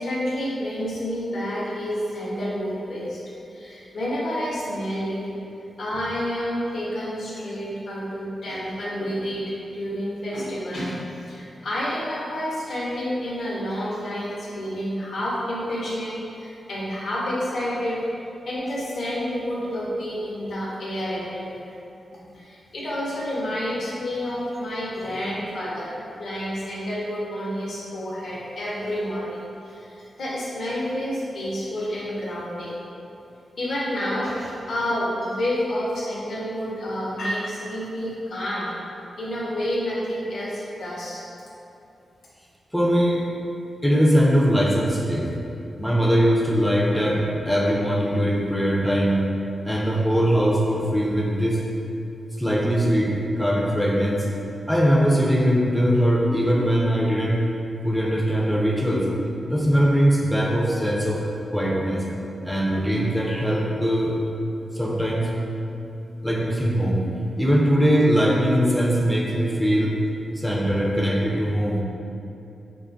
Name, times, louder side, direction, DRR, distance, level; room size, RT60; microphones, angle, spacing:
voice 1, 0.0-3.2 3.5-5.2 5.8-11.0 11.3-18.0 18.5-21.7 22.1-32.8 33.6-38.7 39.2-41.2, equal, 65° left, -6 dB, 0.5 m, -29 dB
voice 2, 42.7-43.3 43.8-45.3 45.8-49.2 49.6-51.6 52.4-54.3 54.7-57.4 57.8-59.1 59.5-61.2 61.5-62.1 62.4-64.2 64.7-65.3 66.2-67.1 67.4-70.0 70.4-71.8, equal, ahead, -4 dB, 0.3 m, -21 dB
2.7 x 2.2 x 2.5 m, 2.8 s
cardioid pair, 80°, 0 cm